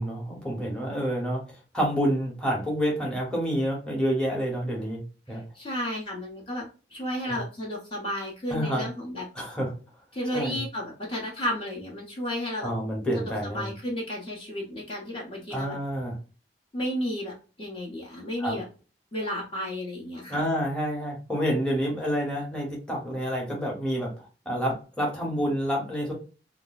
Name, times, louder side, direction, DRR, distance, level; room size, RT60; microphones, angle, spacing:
voice 1, 0.0-1.4 1.7-5.0 5.3-5.4 7.3-7.4 8.5-8.9 9.3-9.7 10.3-10.6 12.6-13.7 15.5-16.2 18.4-18.6 20.3-26.1, equal, 5° left, -2 dB, 0.9 m, -28 dB
voice 2, 5.3-9.3 10.1-12.7 13.1-15.8 16.7-18.6 19.1-20.5, equal, 30° left, -3 dB, 0.8 m, -33 dB
2.3 x 2.1 x 3.9 m, 0.35 s
head